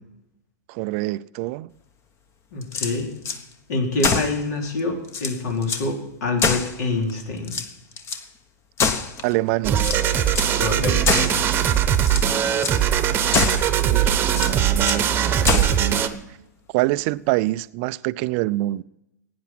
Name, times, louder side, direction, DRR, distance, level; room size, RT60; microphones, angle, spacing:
voice 1, 0.7-1.7 9.2-9.9 13.3-16.1 16.7-18.8, right 18 dB, 45° right, 0.4 m, -26 dB
voice 2, 2.5-3.2 3.7-7.5 10.5-11.4, left 3 dB, 65° left, 3.8 m, -26 dB
sound 1, 2.6-3.4 4.0-4.4 4.8-4.9 5.1-5.9 6.4-7.1 7.4-8.2 8.8-9.4 9.8-10.6 11.1-11.4 11.9-12.3 12.6-12.8 13.3-13.7 14.3-15.1 15.5-15.8, left 5 dB, 30° left, 1.2 m, -25 dB
sound 2, 9.6-16.1, right 9 dB, 20° right, 1.0 m, -20 dB
17.0 x 9.5 x 6.0 m
hypercardioid pair, 130°, 10 cm